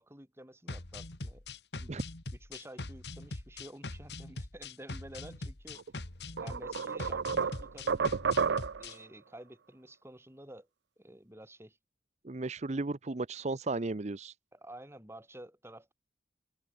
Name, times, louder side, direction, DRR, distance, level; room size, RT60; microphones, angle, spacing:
voice 1, 0.0-1.4 1.8-2.0 2.5-5.8 6.4-8.2 8.8-10.7 11.0-11.8 14.5-15.9, right 1 dB, 15° right, 5.0 m, -51 dB
sound 1, 0.7-9.0, left 2 dB, 70° left, 2.1 m, -42 dB
sound 2, 5.8-5.9 6.4-9.0, right 6 dB, 90° right, 0.5 m, -31 dB
voice 2, 12.2-14.3, right 3 dB, 40° right, 0.7 m, -34 dB
open air
head